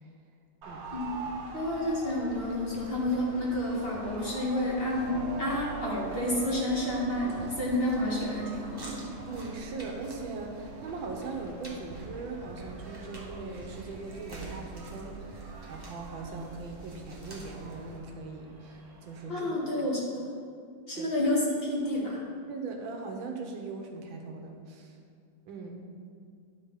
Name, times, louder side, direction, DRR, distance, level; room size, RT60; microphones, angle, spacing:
sound 1, 0.6-19.5, right 3 dB, 55° right, 1.3 m, -47 dB
sound 2, 0.8-18.0, right 2 dB, 15° right, 1.0 m, -48 dB
voice 1, 1.5-9.0 19.3-20.3 20.9-22.2, left 1 dB, 30° left, -5 dB, 1.9 m, -30 dB
Keyboard (musical), 5.1-17.8, right 5 dB, 65° left, 2.6 m, -45 dB
voice 2, 9.3-19.5 20.9-21.1 22.5-25.0 25.5-25.8, right 3 dB, 75° right, 2 dB, 1.7 m, -40 dB
10.5 x 4.4 x 5.7 m, 2.3 s
omnidirectional pair, 2.2 m